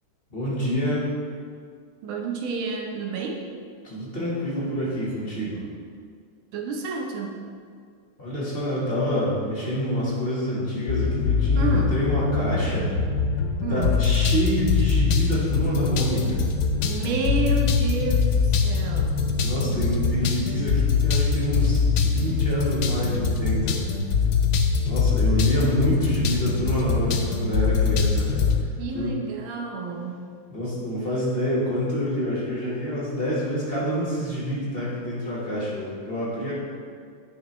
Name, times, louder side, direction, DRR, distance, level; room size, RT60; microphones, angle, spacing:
voice 1, 0.3-1.1 3.8-5.6 8.2-12.9 13.7-16.4 19.4-23.8 24.8-28.5 28.9-29.1 30.5-36.5, equal, 30° left, -7 dB, 1.6 m, -27 dB
voice 2, 2.0-3.5 6.5-7.4 11.6-12.0 13.6-14.0 16.8-19.3 28.8-30.3, right 3 dB, 85° right, 2 dB, 1.6 m, -30 dB
sound 1, 10.9-28.6, left 5 dB, 80° left, 0.8 m, -23 dB
9.8 x 5.0 x 3.1 m, 2.1 s
omnidirectional pair, 2.2 m